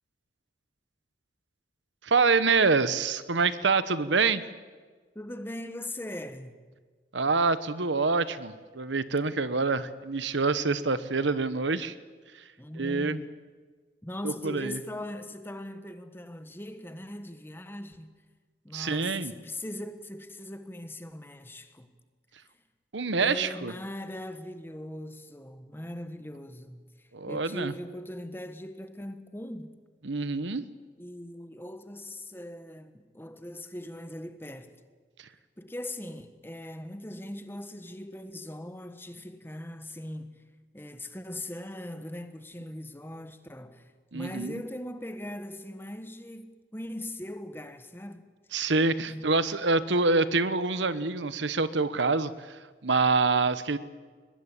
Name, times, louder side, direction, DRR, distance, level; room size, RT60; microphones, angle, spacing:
voice 1, 2.0-4.4 7.1-11.9 12.3-12.4 12.8-13.2 14.2-14.8 18.7-19.3 22.9-23.7 27.1-27.7 30.0-30.7 44.1-44.6 48.5-53.8, right 4 dB, 80° right, 1.1 m, -26 dB
voice 2, 5.1-6.6 12.6-13.3 14.0-18.1 18.6-21.9 23.2-29.7 31.0-34.8 35.6-40.4 40.7-48.2 49.1-49.3, left 1 dB, 10° left, 1.2 m, -40 dB
22.5 x 21.0 x 8.4 m
head